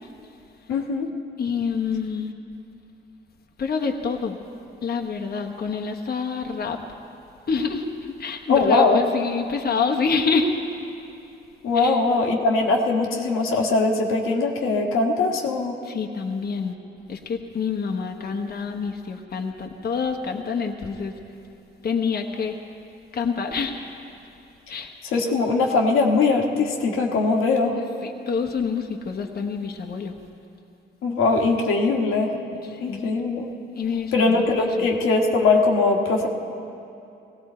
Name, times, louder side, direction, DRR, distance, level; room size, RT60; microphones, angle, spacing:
voice 1, 0.7-1.1 8.5-9.0 11.6-15.7 25.1-27.8 31.0-32.3 32.8-33.5 34.1-36.3, left 3 dB, 85° left, 0 dB, 1.5 m, -21 dB
voice 2, 1.4-2.3 3.6-4.4 4.8-6.8 7.5-10.5 11.7-12.0 15.8-16.8 17.1-21.1 21.8-22.6 23.1-23.8 24.7-24.9 28.0-30.1 32.6-33.1 33.7-34.9, left 5 dB, 50° left, 2 dB, 1.2 m, -27 dB
18.0 x 16.0 x 4.4 m, 2.7 s
cardioid pair, 75°, 21 cm